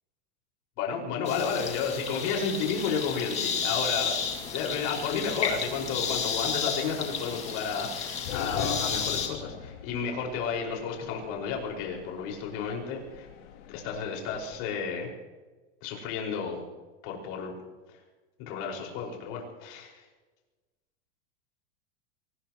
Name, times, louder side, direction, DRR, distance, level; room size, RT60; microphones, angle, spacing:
voice 1, 0.8-4.2 4.5-13.3 13.7-15.1 15.8-16.6 17.0-17.5 17.9-18.0 18.5-20.1, left 6 dB, 45° left, 0 dB, 5.5 m, -32 dB
sound 1, 1.3-9.3, left 6 dB, 20° left, 2.4 m, -32 dB
sound 2, 4.2-14.7, left 8 dB, 70° left, 3.0 m, -43 dB
24.0 x 19.5 x 3.1 m, 1.2 s
supercardioid pair, 165°, 36 cm